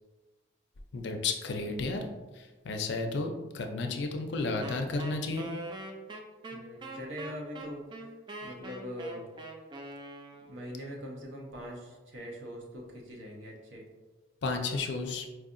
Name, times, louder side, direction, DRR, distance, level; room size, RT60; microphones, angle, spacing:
voice 1, 0.9-2.0 2.3-5.5 14.4-15.3, left 3 dB, 60° left, 4 dB, 0.4 m, -32 dB
Wind instrument woodwind instrument, 4.6-10.7, right 2 dB, 25° right, 0.3 m, -43 dB
voice 2, 6.5-7.8 8.4-9.3 10.5-13.8, equal, 75° right, 0 dB, 0.8 m, -42 dB
4.6 x 2.7 x 2.5 m, 1.3 s
head